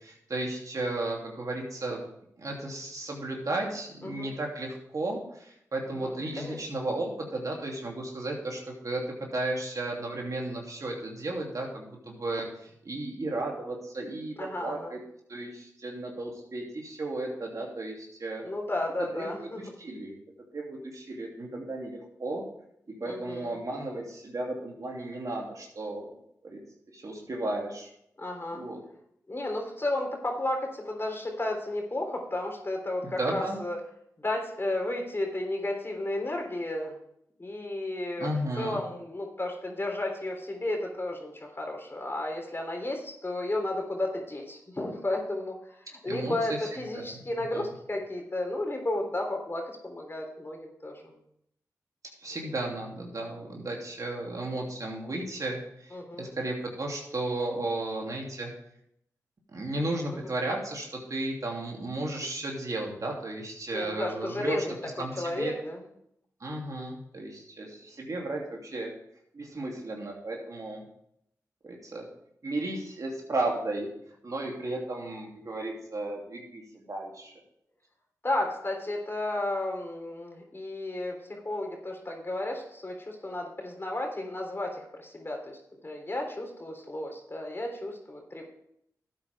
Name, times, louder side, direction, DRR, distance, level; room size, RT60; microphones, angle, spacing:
voice 1, 0.0-2.0 2.4-15.0 15.3-18.4 19.0-20.2 20.5-22.4 23.0-26.1 26.4-26.6 26.9-27.9 28.5-28.8 33.0-33.6 38.2-38.8 46.1-47.2 47.5-47.7 52.2-58.5 59.5-64.6 65.0-65.5 66.4-68.9 69.3-70.8 71.6-72.1 72.4-73.9 74.2-77.3, right 2 dB, 55° right, -1 dB, 3.0 m, -34 dB
voice 2, 6.0-6.6 14.4-14.9 18.4-19.6 23.0-23.5 28.2-28.7 29.3-33.8 34.2-37.0 37.4-38.3 38.6-51.1 55.9-56.3 63.7-64.8 65.2-65.8 78.2-85.6 85.8-88.5, left 1 dB, 35° left, 2 dB, 3.4 m, -33 dB
12.5 x 8.5 x 3.6 m, 0.73 s
cardioid pair, 40°, 7 cm